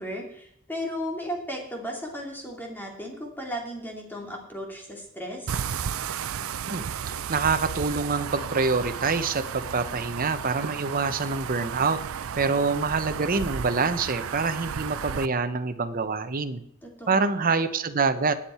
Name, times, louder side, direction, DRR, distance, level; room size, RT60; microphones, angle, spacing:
voice 1, 0.0-5.6 16.8-17.3, equal, 10° left, 0 dB, 2.5 m, -35 dB
sound 1, 5.5-15.3, right 7 dB, 75° right, 0.5 m, -33 dB
voice 2, 6.7-12.0 12.3-16.6 17.1-18.3, right 4 dB, 45° right, 9 dB, 0.9 m, -26 dB
18.5 x 7.3 x 4.4 m, 0.69 s
head